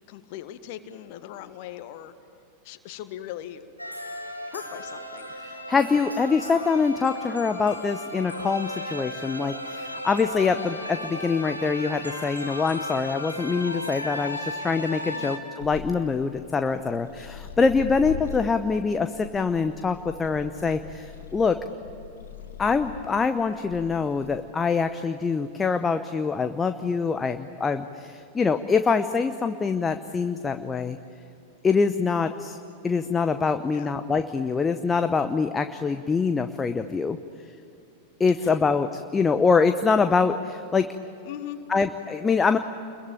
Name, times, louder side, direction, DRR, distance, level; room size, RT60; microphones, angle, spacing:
voice 1, 0.1-2.1 2.6-3.6 4.5-5.3 15.0-15.3 33.7-33.9 38.4-38.6 41.2-41.6, left 12 dB, 45° left, 10 dB, 1.6 m, -39 dB
sound 1, 3.8-15.4, left 1 dB, 90° left, 2.4 m, -35 dB
voice 2, 5.4-21.6 22.6-31.0 31.6-32.6 32.8-37.2 38.2-40.9 41.7-42.6, left 5 dB, 15° left, 8 dB, 0.9 m, -24 dB
sound 2, 15.6-24.5, left 8 dB, 70° left, 1.2 m, -41 dB
29.0 x 22.0 x 8.9 m, 2.8 s
figure-of-eight pair, 90°, 0 cm